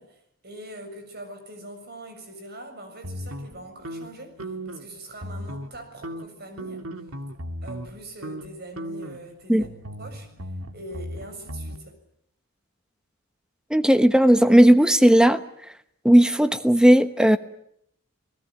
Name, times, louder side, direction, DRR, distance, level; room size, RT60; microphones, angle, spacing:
voice 1, 0.0-6.9 7.6-9.7 10.0-10.3 10.7-12.0, right 1 dB, 50° right, 7 dB, 6.9 m, -42 dB
sound 1, 3.0-4.9 5.2-5.8 6.0-7.9 8.2-8.5 8.8-11.8, equal, 90° right, 2.2 m, -36 dB
voice 2, 13.7-15.4 16.0-17.4, right 1 dB, 5° right, 10 dB, 1.1 m, -16 dB
30.0 x 18.5 x 8.9 m, 0.74 s
head